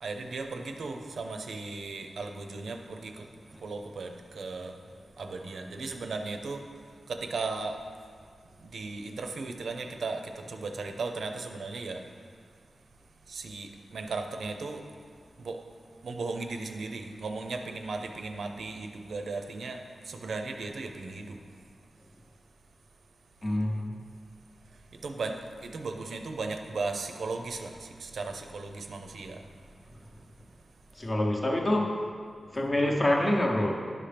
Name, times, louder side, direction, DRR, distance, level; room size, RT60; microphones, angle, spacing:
voice 1, 0.0-3.3 3.6-4.7 5.2-6.6 7.1-7.8 8.6-12.0 13.3-14.8 15.4-15.6 16.0-19.8 20.1-21.4 25.0-29.4, right 3 dB, 75° right, 5 dB, 0.6 m, -36 dB
voice 2, 23.4-24.0 31.0-32.0 32.5-33.7, left 1 dB, 25° left, 1 dB, 0.8 m, -26 dB
10.5 x 5.8 x 3.4 m, 2.1 s
wide cardioid pair, 180°, 0 cm